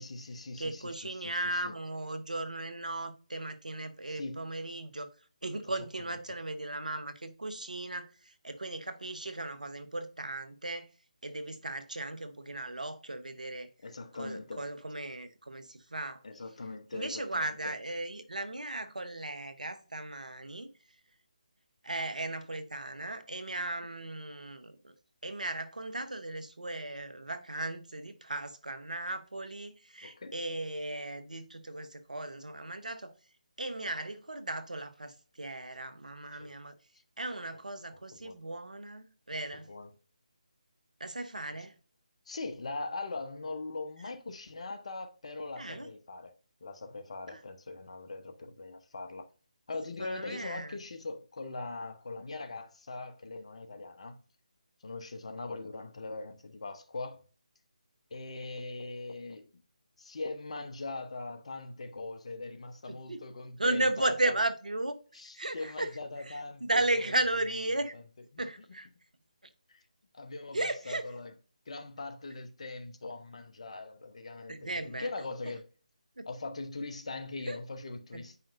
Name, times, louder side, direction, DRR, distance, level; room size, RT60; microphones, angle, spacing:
voice 1, 0.0-1.7 4.1-4.5 6.3-6.4 13.8-14.7 16.2-17.6 30.0-30.4 36.3-36.6 37.9-38.4 39.5-39.9 42.3-46.3 46.6-49.3 49.7-54.2 54.8-57.2 58.1-59.5 60.0-64.4 65.1-67.1 67.9-68.0 68.3-68.4 69.7-69.8 70.1-71.3 71.7-75.7 76.3-78.4, left 3 dB, 50° left, 1.0 m, -41 dB
voice 2, 0.6-5.1 5.4-10.9 11.2-13.7 14.1-16.2 16.9-20.7 21.8-24.9 25.2-33.1 33.6-36.7 37.2-39.7 41.0-41.7 45.6-45.9 47.3-47.4 50.0-50.8 62.9-63.2 63.6-65.0 65.3-65.9 66.3-67.9 68.4-68.9 70.5-71.1 74.5-75.1 76.2-76.3 77.5-77.6 78.1-78.2, right 2 dB, 80° right, 1.1 m, -36 dB
8.7 x 5.6 x 2.6 m
figure-of-eight pair, 155°, 4 cm